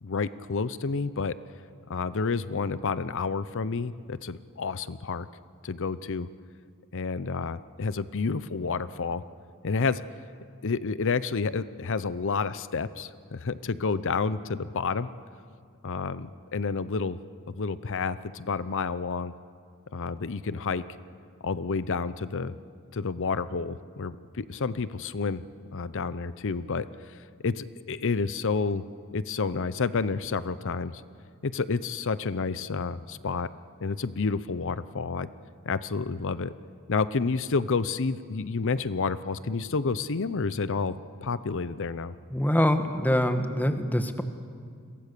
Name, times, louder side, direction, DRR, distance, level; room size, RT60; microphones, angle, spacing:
voice 1, 0.0-1.3 1.9-5.3 5.6-6.3 6.9-9.2 9.6-10.0 10.6-15.1 15.8-17.2 17.5-19.3 19.9-20.8 21.4-22.6 22.9-25.4 25.7-27.2 27.4-28.8 29.1-31.0 31.4-33.5 33.8-35.3 35.7-36.5 36.9-40.9 41.2-42.1, left 4 dB, 60° left, 15 dB, 0.7 m, -29 dB
voice 2, 42.3-44.2, left 1 dB, 10° left, 8 dB, 1.3 m, -24 dB
29.5 x 22.5 x 6.8 m, 2.2 s
head